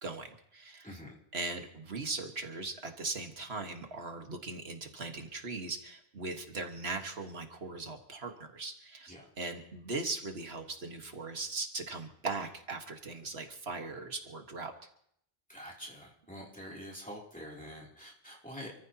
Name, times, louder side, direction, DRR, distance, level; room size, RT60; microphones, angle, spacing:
voice 1, 0.0-1.0 1.3-14.7, right 3 dB, 80° right, 4 dB, 1.8 m, -39 dB
voice 2, 0.8-1.2 9.1-9.3 15.5-18.8, equal, 5° left, -3 dB, 3.0 m, -46 dB
28.0 x 14.5 x 2.9 m, 0.69 s
omnidirectional pair, 1.0 m